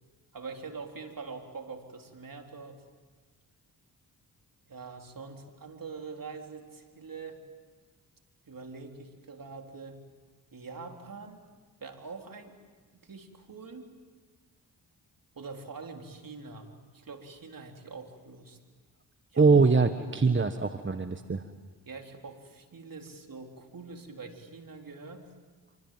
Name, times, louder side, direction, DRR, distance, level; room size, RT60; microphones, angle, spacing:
voice 1, 0.3-2.8 4.7-7.4 8.5-10.0 10.5-11.4 11.8-12.6 12.9-13.9 15.4-18.6 19.3-19.6 20.0-20.4 21.9-25.3, right 4 dB, 50° right, 3 dB, 3.9 m, -44 dB
voice 2, 19.4-21.4, right 4 dB, 30° right, 8 dB, 1.4 m, -23 dB
27.0 x 25.0 x 7.7 m, 1.4 s
supercardioid pair, 50°, 42 cm